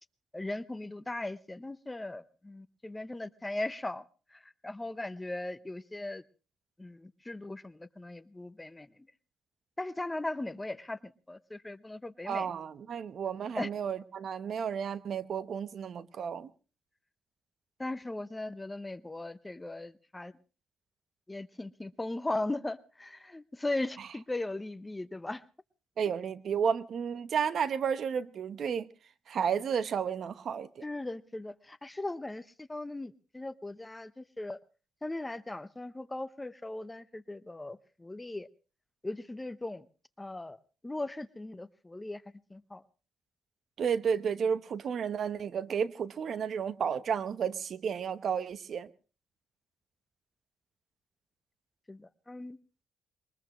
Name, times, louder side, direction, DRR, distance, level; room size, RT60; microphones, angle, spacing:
voice 1, 0.3-4.0 4.3-6.2 6.8-8.9 9.8-12.5 13.6-13.7 17.8-20.3 21.3-25.4 30.8-34.6 35.0-38.5 39.0-39.9 40.2-42.2 42.5-42.8 51.9-52.6, left 2 dB, 15° left, 0.7 m, -38 dB
voice 2, 12.3-16.5 24.0-24.1 26.0-28.9 29.3-30.8 43.8-48.9, right 7 dB, 60° right, 0.9 m, -32 dB
22.0 x 20.5 x 3.1 m
cardioid pair, 90°, 0 cm